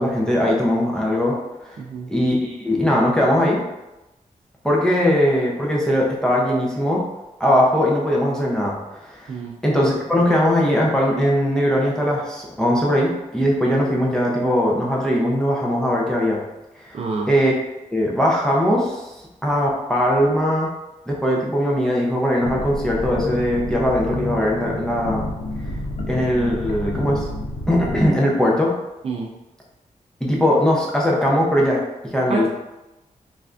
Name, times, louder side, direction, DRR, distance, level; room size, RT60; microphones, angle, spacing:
voice 1, 0.0-1.4 1.6-1.8 2.1-3.6 4.6-7.1 7.4-8.8 9.0-9.3 9.6-16.4 16.8-17.0 17.3-17.5 17.9-19.0 19.4-20.7 21.1-25.2 26.1-27.3 27.7-28.7 30.2-32.5, equal, 5° left, -4 dB, 0.5 m, -20 dB
voice 2, 1.8-2.1 9.3-9.5 16.9-17.3 29.0-29.3 32.3-32.5, right 4 dB, 45° right, -1 dB, 0.3 m, -27 dB
sound 1, 22.4-28.1, left 1 dB, 80° left, 0.5 m, -29 dB
3.2 x 2.5 x 2.4 m, 0.99 s
wide cardioid pair, 110°, 14 cm